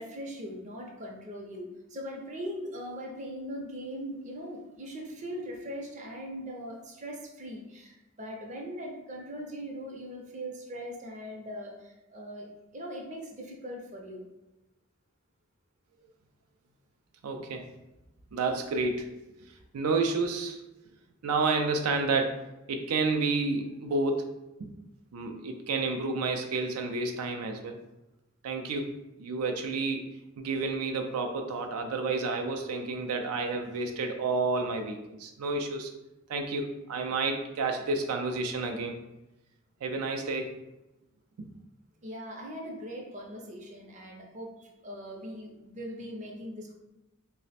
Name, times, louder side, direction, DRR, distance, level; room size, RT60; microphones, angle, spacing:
voice 1, 0.0-12.5 12.7-14.3 42.0-46.7, equal, 35° right, 0 dB, 0.5 m, -40 dB
voice 2, 17.2-17.7 18.3-19.1 19.7-20.6 21.2-24.3 24.6-24.7 25.1-27.8 28.4-28.9 29.2-30.1 30.4-35.9 36.3-38.9 39.8-40.5 41.4-41.5, right 3 dB, 90° right, 4 dB, 0.4 m, -30 dB
3.1 x 2.0 x 4.0 m, 0.97 s
head